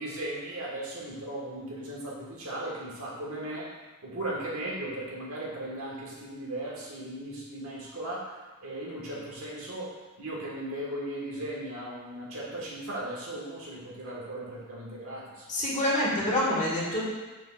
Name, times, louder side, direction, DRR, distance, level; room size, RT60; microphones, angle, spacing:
voice 1, 0.0-3.7 4.0-15.5, right 1 dB, 65° right, -4 dB, 1.6 m, -37 dB
voice 2, 15.5-17.0, left 1 dB, 35° left, -6 dB, 1.7 m, -26 dB
6.8 x 6.2 x 2.5 m, 1.2 s
head